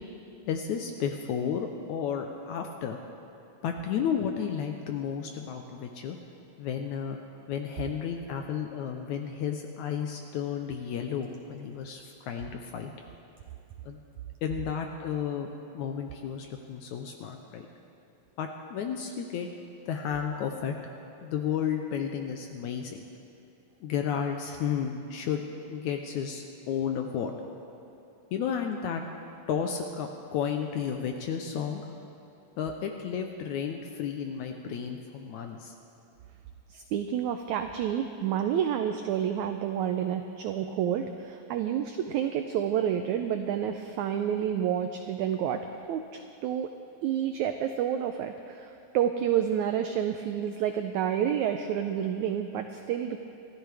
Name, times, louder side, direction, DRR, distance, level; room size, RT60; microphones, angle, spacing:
voice 1, 0.5-3.0 3.6-6.2 6.6-7.2 7.5-12.9 13.8-14.0 14.4-15.5 15.7-17.7 18.4-19.5 19.9-20.8 21.2-23.1 23.8-27.4 28.3-29.0 29.5-31.8 32.6-35.7, left 7 dB, 75° left, 4 dB, 1.8 m, -32 dB
voice 2, 36.7-46.7 47.0-53.2, right 9 dB, 90° right, 6 dB, 1.6 m, -29 dB
27.0 x 14.0 x 3.4 m, 2.9 s
omnidirectional pair, 4.1 m